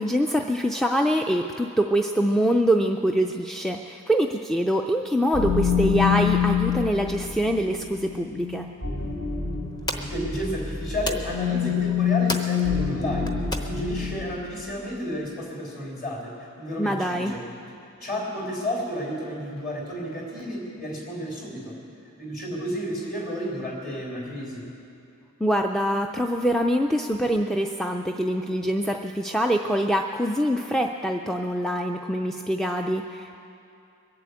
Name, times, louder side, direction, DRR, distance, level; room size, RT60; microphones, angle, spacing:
voice 1, 0.0-8.7 16.8-17.3 25.4-33.4, equal, ahead, 3 dB, 0.3 m, -24 dB
sound 1, 5.3-14.5, left 7 dB, 65° left, 1.7 m, -26 dB
sound 2, 9.0-14.2, left 1 dB, 20° left, 0.8 m, -37 dB
voice 2, 9.9-17.5 17.8-21.8 22.2-24.6, equal, 40° left, -2 dB, 3.9 m, -32 dB
22.0 x 7.8 x 8.4 m, 2.6 s
head